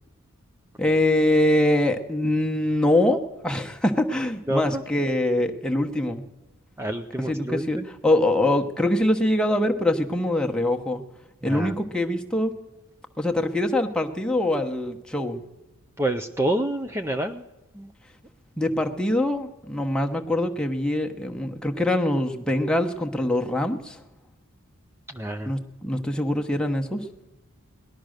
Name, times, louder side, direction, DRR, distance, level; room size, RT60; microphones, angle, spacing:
voice 1, 0.8-6.2 7.3-11.0 11.4-12.5 13.2-15.4 18.6-24.0 25.5-27.1, left 1 dB, 5° left, 2 dB, 1.0 m, -24 dB
voice 2, 4.5-4.8 6.8-7.9 11.4-11.8 16.0-17.4 17.7-17.9 25.1-25.5, right 1 dB, 10° right, 6 dB, 0.4 m, -28 dB
19.0 x 12.0 x 6.5 m, 1.1 s
head